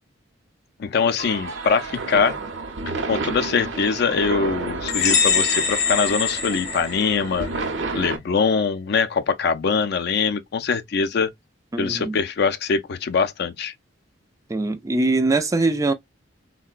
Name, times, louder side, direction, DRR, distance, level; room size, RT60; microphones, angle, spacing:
voice 1, 0.8-2.4 3.1-7.5 7.9-11.3 11.8-13.7, left 5 dB, 55° left, 0.4 m, -23 dB
sound 1, 1.2-8.2, right 3 dB, 70° right, 0.7 m, -31 dB
sound 2, 4.9-7.5, left 6 dB, 40° left, 0.8 m, -23 dB
voice 2, 11.7-12.2 14.5-15.9, right 2 dB, 15° right, 0.3 m, -22 dB
3.7 x 2.1 x 2.3 m
head